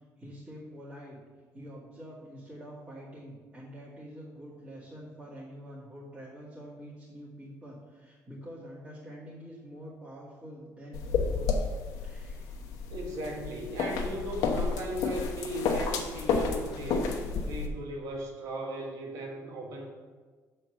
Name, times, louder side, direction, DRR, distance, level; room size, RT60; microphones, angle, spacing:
voice 1, 0.2-1.2 1.5-11.7 12.0-12.5, equal, 20° right, -10 dB, 2.2 m, -46 dB
sound 1, 10.9-17.7, left 5 dB, 90° left, 1.0 m, -31 dB
voice 2, 12.9-17.1 17.4-19.9, right 1 dB, 70° right, 1 dB, 1.7 m, -37 dB
7.2 x 4.4 x 6.3 m, 1.4 s
cardioid pair, 135°, 6 cm